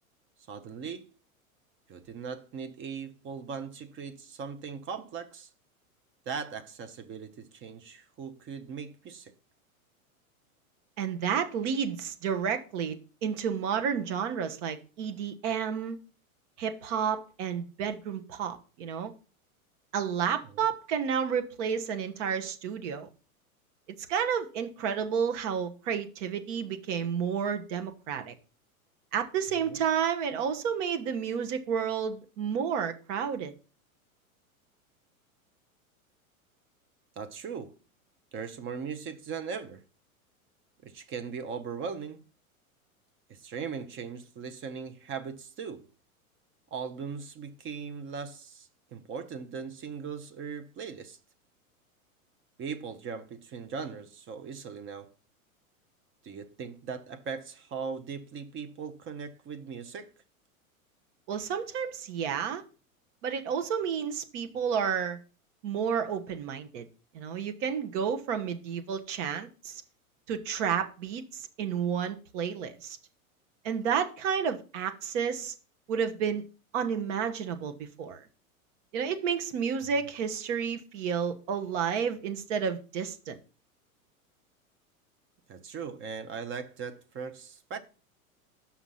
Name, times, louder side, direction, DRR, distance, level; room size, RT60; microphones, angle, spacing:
voice 1, 0.5-1.1 1.9-5.5 6.3-9.3 20.5-20.7 29.7-29.8 37.2-37.8 38.3-39.8 40.8-42.3 43.3-45.9 46.7-51.2 52.6-55.1 56.2-60.1 85.5-87.8, right 6 dB, 30° right, 0.8 m, -39 dB
voice 2, 11.0-16.0 16.6-19.1 19.9-23.1 24.1-28.3 29.1-33.5 61.3-62.6 63.2-65.2 65.6-66.9 67.1-69.7 70.3-73.0 73.6-75.5 75.9-76.4 76.7-78.2 78.9-83.4, right 7 dB, 55° right, 1.2 m, -31 dB
6.1 x 5.8 x 5.5 m
hypercardioid pair, 105°, 43 cm